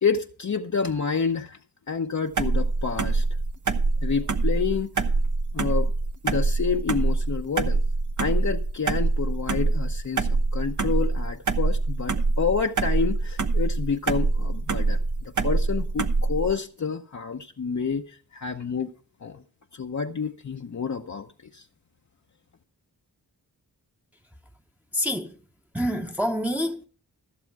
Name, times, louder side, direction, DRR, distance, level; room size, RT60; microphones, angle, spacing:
voice 1, 0.0-1.6 1.9-3.3 4.0-5.1 5.5-5.9 6.2-7.8 8.2-18.9 19.2-19.4 19.7-21.3 21.5-21.6, left 5 dB, 50° left, 0.8 m, -29 dB
sound 1, 2.4-16.5, right 3 dB, 50° right, 1.0 m, -24 dB
voice 2, 24.9-25.3 25.7-26.9, equal, 5° right, 0.9 m, -26 dB
14.5 x 7.0 x 4.7 m
cardioid pair, 45°, 39 cm